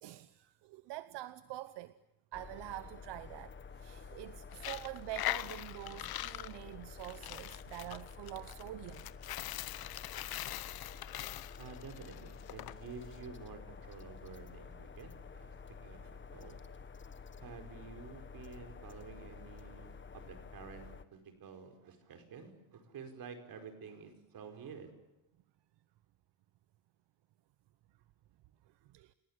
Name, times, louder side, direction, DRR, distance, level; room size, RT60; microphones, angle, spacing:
voice 1, 0.0-2.0 2.3-9.1 28.7-29.1, right 16 dB, 85° right, 1.0 m, -46 dB
sound 1, 2.3-21.0, left 5 dB, 30° left, 1.4 m, -50 dB
Coin (dropping), 4.5-12.7, left 14 dB, 65° left, 0.9 m, -42 dB
voice 2, 11.6-15.5 15.8-16.6 17.4-24.9, right 5 dB, 60° right, 5.2 m, -50 dB
29.5 x 18.0 x 9.9 m
cardioid pair, 125°, 40 cm